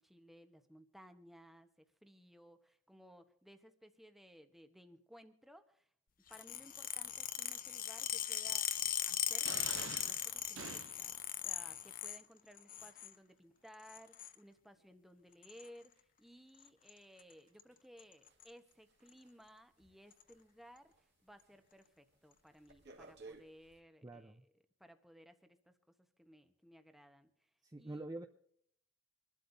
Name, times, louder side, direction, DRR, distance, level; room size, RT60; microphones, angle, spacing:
voice 1, 0.0-5.9 6.3-8.7 9.1-9.5 10.0-24.5 24.8-25.7 26.2-27.3 27.8-28.0, equal, ahead, 8 dB, 1.0 m, -59 dB
sound 1, 6.3-12.2 12.6-13.1 13.9-14.3 15.4-15.7 16.6-16.9 17.2-17.3 17.6-17.7 18.0-18.5 19.1-19.2 20.1-20.2, left 11 dB, 45° left, 0.7 m, -39 dB
sound 2, 9.4-11.2, right 7 dB, 80° right, 0.6 m, -47 dB
sound 3, 18.3-21.1 21.4-21.7 22.1-23.8, right 3 dB, 60° right, 2.0 m, -58 dB
voice 2, 24.0-24.4 27.6-28.3, right 2 dB, 20° right, 5 dB, 0.6 m, -46 dB
25.5 x 12.0 x 2.7 m, 0.64 s
head